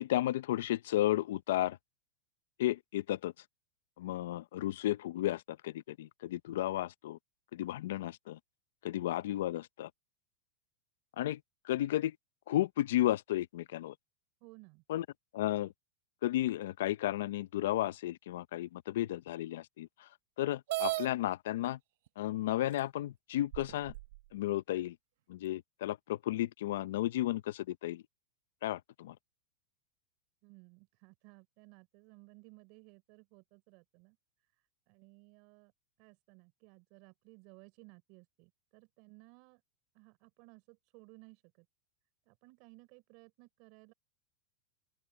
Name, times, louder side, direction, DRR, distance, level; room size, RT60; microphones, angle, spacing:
voice 1, 0.0-1.8 2.6-3.3 4.0-7.2 7.5-8.4 8.8-9.9 11.2-11.4 11.7-12.1 12.5-13.9 14.9-15.0 15.3-15.7 16.2-19.9 20.4-21.8 22.2-23.9 24.3-24.9 25.3-28.0 28.6-29.1, left 14 dB, 70° left, 0.6 m, -33 dB
voice 2, 14.4-14.8 30.4-35.7 36.0-39.6 39.9-41.7 42.3-43.9, right 27 dB, 45° right, 5.8 m, -59 dB
sound 1, 20.7-21.1 22.1-22.2 22.8-22.9 23.5-24.2, right 20 dB, 65° right, 0.6 m, -35 dB
open air
supercardioid pair, 165°, 0 cm